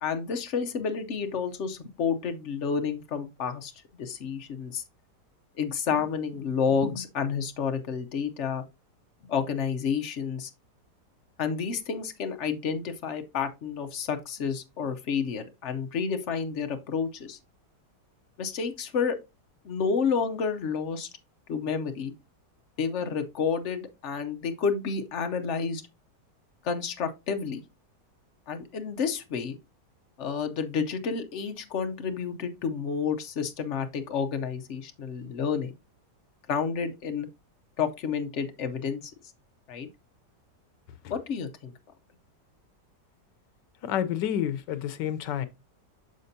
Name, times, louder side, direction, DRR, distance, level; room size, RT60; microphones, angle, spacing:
voice 1, 0.0-3.7 4.0-4.8 5.6-8.6 9.2-10.5 11.4-17.4 18.4-19.2 19.6-21.1 21.5-22.1 22.8-25.8 26.6-27.6 28.5-29.6 30.2-35.7 36.5-37.3 37.8-39.1 39.7-39.9 41.1-41.7, left 6 dB, 55° left, 0.8 m, -30 dB
voice 2, 43.8-45.5, left 10 dB, 85° left, 1.3 m, -29 dB
6.7 x 6.5 x 2.7 m
omnidirectional pair, 1.9 m